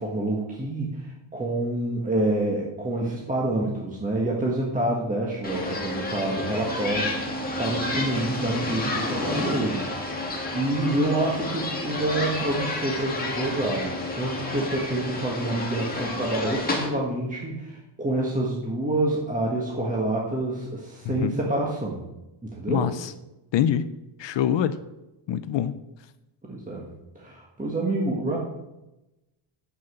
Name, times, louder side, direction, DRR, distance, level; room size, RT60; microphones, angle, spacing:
voice 1, 0.0-22.0 22.4-22.9 26.5-26.9 27.1-28.4, right 1 dB, 15° right, -2 dB, 1.5 m, -27 dB
sound 1, 5.4-16.9, left 2 dB, 20° left, 2.1 m, -30 dB
voice 2, 22.7-23.1 23.5-23.9 24.2-24.8 25.3-25.7, left 10 dB, 65° left, 13 dB, 0.7 m, -24 dB
7.6 x 7.4 x 7.8 m, 0.96 s
cardioid pair, 150°, 48 cm